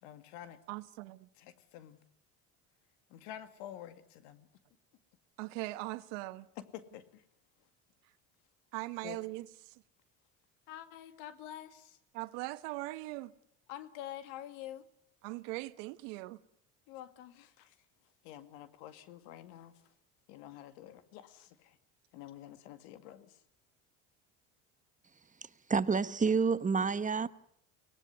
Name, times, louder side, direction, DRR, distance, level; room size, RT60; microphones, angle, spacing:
voice 1, 0.0-0.6 1.4-2.0 3.1-4.5 6.7-7.2 9.0-9.2 10.7-12.0 13.7-14.8 16.9-17.8 18.2-19.7 20.3-21.8 22.1-23.4, left 12 dB, 80° left, 2.2 m, -48 dB
voice 2, 0.7-1.3 5.4-6.5 8.7-9.5 12.1-13.3 15.2-16.4, right 20 dB, 80° right, 1.2 m, -40 dB
voice 3, 25.7-27.3, right 5 dB, 20° right, 1.0 m, -28 dB
24.0 x 18.5 x 9.6 m
supercardioid pair, 90°, 37 cm